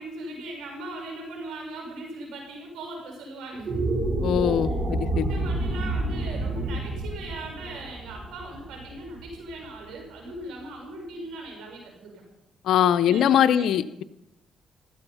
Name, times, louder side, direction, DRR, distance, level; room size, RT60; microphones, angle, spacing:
voice 1, 0.0-3.8 4.6-4.7 5.1-12.1 13.0-13.3 13.6-13.7, right 2 dB, 85° right, 1 dB, 5.8 m, -39 dB
sound 1, 3.5-9.9, right 2 dB, 30° right, 4.3 m, -29 dB
voice 2, 4.2-5.3 12.6-14.0, left 10 dB, 75° left, 11 dB, 0.6 m, -22 dB
16.0 x 13.0 x 5.6 m, 0.89 s
cardioid pair, 90°, 0 cm